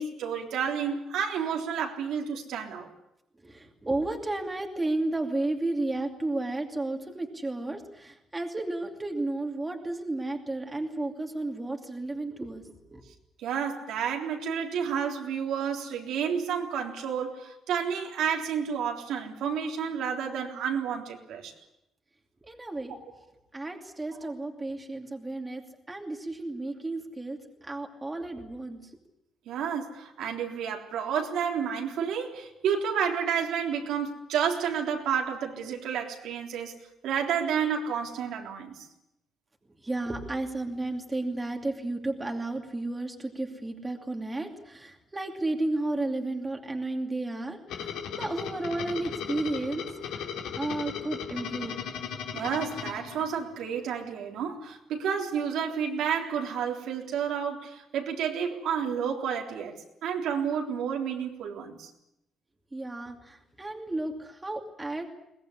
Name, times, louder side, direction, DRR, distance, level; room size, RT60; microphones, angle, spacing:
voice 1, 0.0-2.9 13.4-21.5 24.2-24.3 29.5-38.9 52.3-59.7 60.0-61.9, right 7 dB, 80° right, 2 dB, 3.6 m, -30 dB
voice 2, 3.4-13.0 22.4-22.9 23.5-28.9 39.8-51.8 62.7-65.0, right 2 dB, 15° right, 3 dB, 2.7 m, -33 dB
sound 1, 47.7-53.7, left 7 dB, 90° left, 3.4 m, -37 dB
22.0 x 20.0 x 9.9 m, 0.84 s
cardioid pair, 155°, 0 cm